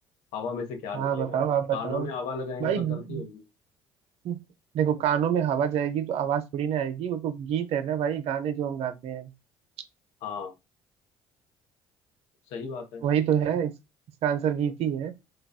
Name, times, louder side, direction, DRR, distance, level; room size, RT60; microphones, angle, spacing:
voice 1, 0.3-1.4 1.7-3.4 10.2-10.5 12.5-13.0, left 4 dB, 80° left, 0.7 m, -35 dB
voice 2, 0.9-2.1 2.6-3.2 4.2-4.4 4.7-9.3 13.0-13.7 14.2-15.1, right 9 dB, 65° right, 0.5 m, -27 dB
3.5 x 2.2 x 2.2 m
hypercardioid pair, 65°, 12 cm